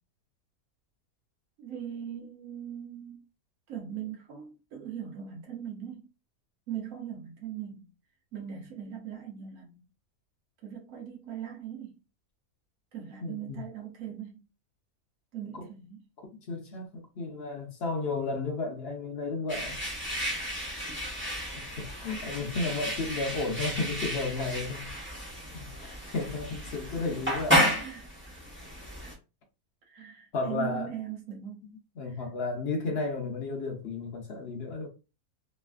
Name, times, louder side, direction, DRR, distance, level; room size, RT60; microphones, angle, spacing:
voice 1, 1.6-3.2 3.7-6.1 6.7-7.9 8.3-9.9 10.6-12.0 12.9-14.4 15.3-16.0 20.7-21.0 26.0-26.1 26.7-26.9 27.6-28.5 29.0-29.2 29.9-31.7 32.0-32.2, right 9 dB, 65° right, 1.1 m, -40 dB
voice 2, 13.2-13.6 15.5-15.7 16.5-19.8 21.8-24.9 25.5-27.6 30.3-30.9 32.0-34.9, left 3 dB, 55° left, 0.7 m, -33 dB
sound 1, 19.5-29.1, equal, 10° right, 0.6 m, -32 dB
3.1 x 2.5 x 2.3 m
omnidirectional pair, 1.6 m